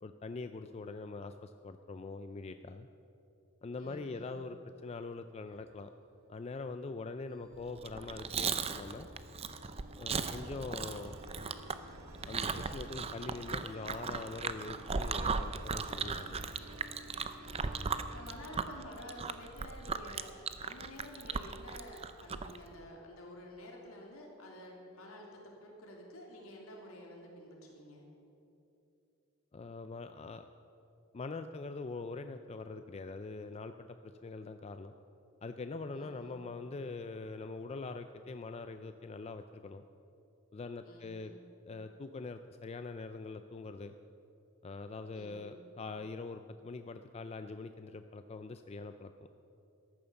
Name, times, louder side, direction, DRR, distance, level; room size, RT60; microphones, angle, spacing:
voice 1, 0.0-2.9 3.6-5.9 6.3-9.1 10.0-11.2 12.3-16.4 29.5-30.5 31.1-34.9 35.4-39.8 40.5-41.3 41.7-43.9 44.6-49.1, left 3 dB, 30° left, 9 dB, 0.4 m, -43 dB
voice 2, 3.8-4.3 10.7-10.9 17.4-17.6 18.1-28.0 35.9-36.4 40.8-41.4 45.1-45.6, left 1 dB, 70° left, -1 dB, 3.2 m, -50 dB
sound 1, 5.5-6.7 7.3-19.9, equal, 70° right, 1.5 m, -53 dB
Chewing mastication, 7.8-22.6, right 5 dB, 25° right, 0.5 m, -37 dB
14.0 x 11.0 x 7.0 m, 2.8 s
head